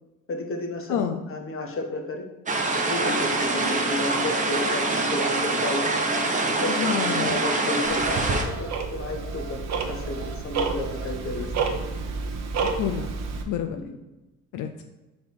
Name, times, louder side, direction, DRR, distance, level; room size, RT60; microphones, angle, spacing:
voice 1, 0.3-2.3 2.9-5.9 6.4-11.8 13.8-14.0, left 2 dB, 45° left, 3 dB, 1.2 m, -33 dB
voice 2, 0.9-1.2 6.7-7.4 12.6-13.1 13.5-13.9 14.5-14.8, left 8 dB, 85° left, 6 dB, 0.5 m, -28 dB
sound 1, 2.5-8.4, right 2 dB, 25° right, 1.0 m, -25 dB
Alarm, 5.5-11.1, right 5 dB, 80° right, 1.1 m, -44 dB
Tick-tock, 7.8-13.4, right 4 dB, 60° right, 0.9 m, -30 dB
4.8 x 4.2 x 5.4 m, 1.1 s
cardioid pair, 90°, 30 cm